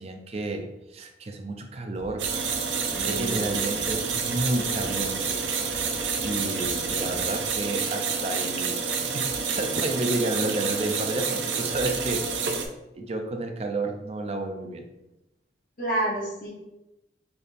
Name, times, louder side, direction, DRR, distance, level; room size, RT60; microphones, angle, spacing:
voice 1, 0.0-2.3 3.0-5.4 6.2-12.3 13.0-14.9, right 2 dB, 35° right, 5 dB, 0.4 m, -31 dB
sound 1, 1.9-7.5, equal, 15° right, 1.1 m, -45 dB
sound 2, 2.2-12.7, right 5 dB, 85° right, 0.5 m, -28 dB
voice 2, 2.9-3.6 15.8-16.5, right 1 dB, 45° left, -6 dB, 0.9 m, -29 dB
4.0 x 3.4 x 2.5 m, 0.93 s
head